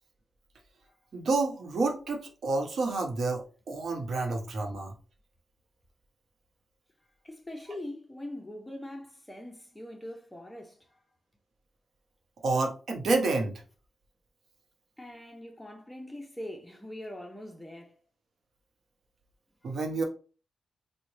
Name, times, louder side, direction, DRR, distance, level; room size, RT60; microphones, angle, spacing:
voice 1, 1.1-4.9 12.4-13.6 19.6-20.0, right 3 dB, 65° right, 0.7 m, -29 dB
voice 2, 7.2-10.8 15.0-17.9, left 1 dB, 10° left, 0.6 m, -42 dB
3.7 x 2.1 x 3.2 m
cardioid pair, 75°, 0 cm